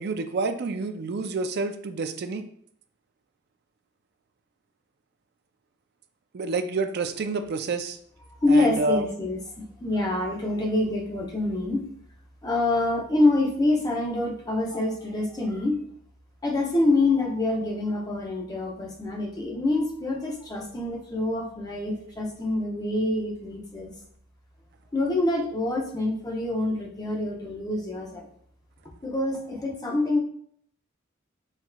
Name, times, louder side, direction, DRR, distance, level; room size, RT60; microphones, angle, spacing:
voice 1, 0.0-2.4 6.3-8.0 8.5-9.0, right 3 dB, 50° right, 8 dB, 0.4 m, -28 dB
voice 2, 8.4-11.8 12.4-15.8 16.4-23.9 24.9-28.3 29.0-30.2, left 2 dB, 20° left, -1 dB, 0.7 m, -26 dB
5.6 x 3.0 x 2.3 m, 0.65 s
head